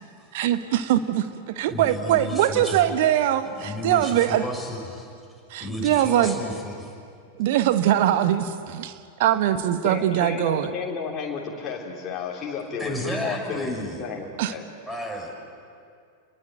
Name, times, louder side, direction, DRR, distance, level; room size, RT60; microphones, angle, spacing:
voice 1, 0.3-4.5 5.5-6.4 7.4-8.9 9.2-10.7 14.4-14.5, right 11 dB, 50° right, 10 dB, 1.4 m, -22 dB
voice 2, 1.7-2.9 3.4-5.1 5.6-6.9 12.8-14.0 14.9-15.3, left 1 dB, 5° right, 0 dB, 6.6 m, -32 dB
voice 3, 9.8-14.6, left 5 dB, 25° left, -2 dB, 3.5 m, -32 dB
29.5 x 21.0 x 9.2 m, 2.3 s
figure-of-eight pair, 90°, 0 cm